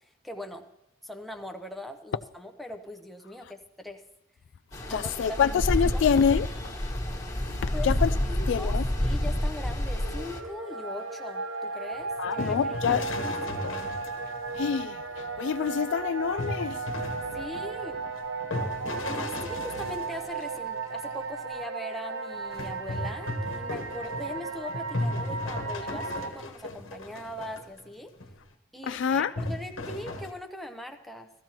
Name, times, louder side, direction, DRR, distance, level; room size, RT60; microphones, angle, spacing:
voice 1, 0.2-0.7 1.0-4.0 4.9-5.6 5.9-6.1 7.7-7.9 8.3-12.6 12.9-13.0 13.5-13.9 17.3-18.0 19.0-28.1 28.7-31.3, left 1 dB, ahead, 0.8 m, -41 dB
Stream, 4.7-10.4, left 1 dB, 15° left, 1.4 m, -29 dB
voice 2, 4.9-6.5 7.5-8.1 8.5-8.8 12.2-13.0 14.6-16.8 28.9-29.3, left 7 dB, 65° left, 0.3 m, -26 dB
sound 1, 9.8-26.3, right 4 dB, 90° right, 1.1 m, -35 dB
sound 2, 11.9-14.8 16.4-21.0 22.5-27.8 28.2-28.4 29.4-30.3, left 2 dB, 85° left, 1.2 m, -36 dB
16.5 x 13.5 x 2.9 m
head